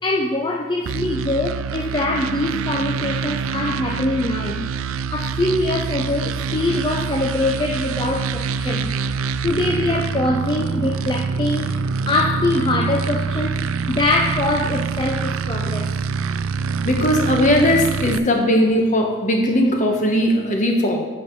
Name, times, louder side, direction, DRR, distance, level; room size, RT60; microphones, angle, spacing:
voice 1, 0.0-4.7 5.1-8.9 9.4-11.7 12.1-13.6 13.9-15.9, left 2 dB, 25° left, 2 dB, 0.4 m, -23 dB
sound 1, 0.9-18.2, right 5 dB, 90° right, 0.3 m, -25 dB
voice 2, 16.8-21.1, equal, 40° left, 2 dB, 1.1 m, -18 dB
8.5 x 5.5 x 4.6 m, 1.3 s
head